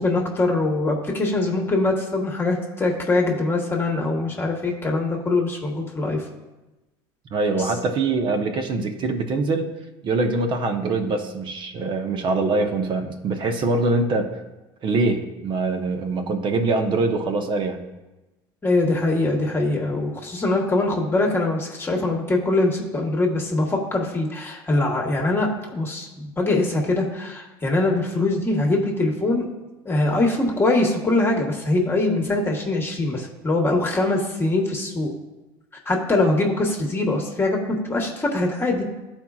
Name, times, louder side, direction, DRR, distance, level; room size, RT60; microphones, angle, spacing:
voice 1, 0.0-6.2 7.6-7.7 18.6-29.5 29.8-35.1 35.8-38.8, left 2 dB, 20° left, 0 dB, 1.3 m, -23 dB
voice 2, 7.3-9.7 10.0-14.3 14.8-17.8, right 3 dB, 50° right, 6 dB, 1.0 m, -23 dB
13.0 x 4.5 x 2.4 m, 1.1 s
supercardioid pair, 90°, 11 cm